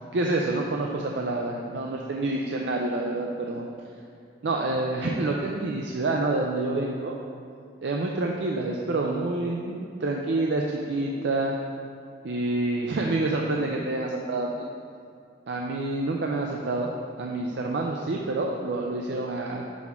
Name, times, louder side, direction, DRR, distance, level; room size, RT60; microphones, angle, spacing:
voice 1, 0.1-3.7 4.4-7.2 7.8-11.5 12.2-14.5 15.5-16.9 17.2-19.7, right 2 dB, 70° right, 0 dB, 0.4 m, -27 dB
6.1 x 3.6 x 5.8 m, 2.3 s
head